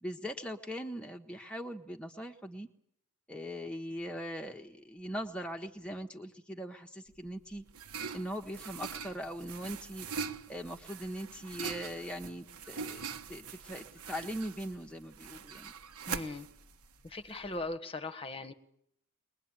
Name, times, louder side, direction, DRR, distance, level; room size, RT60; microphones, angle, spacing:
voice 1, 0.0-2.7 3.3-7.6 8.1-10.1 10.5-15.7, equal, 5° left, 3 dB, 1.4 m, -41 dB
sound 1, 7.1-17.7, right 6 dB, 75° right, 1.4 m, -43 dB
voice 2, 16.1-16.5 17.0-18.5, left 2 dB, 25° left, 7 dB, 1.7 m, -39 dB
22.0 x 21.5 x 9.0 m, 0.70 s
head